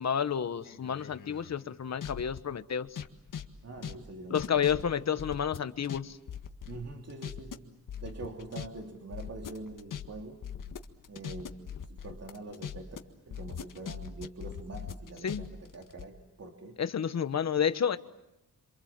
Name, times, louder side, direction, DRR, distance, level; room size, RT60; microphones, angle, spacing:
voice 1, 0.0-2.9 4.3-6.2 15.2-15.4 16.8-18.0, left 8 dB, 55° left, 11 dB, 1.3 m, -30 dB
sound 1, 0.6-2.4 2.9-6.0 6.3-7.6 7.9-8.7 8.9-13.0 13.3-16.0, left 8 dB, 75° left, 1.8 m, -41 dB
voice 2, 3.6-5.2 6.7-10.4 11.1-13.0 13.2-16.8, right 2 dB, 50° right, 1 dB, 3.0 m, -44 dB
28.0 x 26.0 x 7.5 m, 0.88 s
wide cardioid pair, 120°, 32 cm